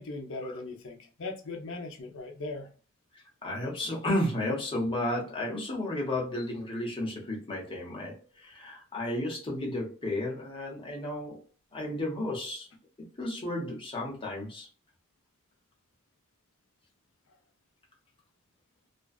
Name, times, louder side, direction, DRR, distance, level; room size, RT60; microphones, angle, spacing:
voice 1, 0.0-2.7, left 2 dB, 65° left, 0.6 m, -39 dB
voice 2, 3.4-11.4 11.7-12.7 13.2-14.7, left 1 dB, 25° left, 0.9 m, -33 dB
2.5 x 2.3 x 2.3 m
head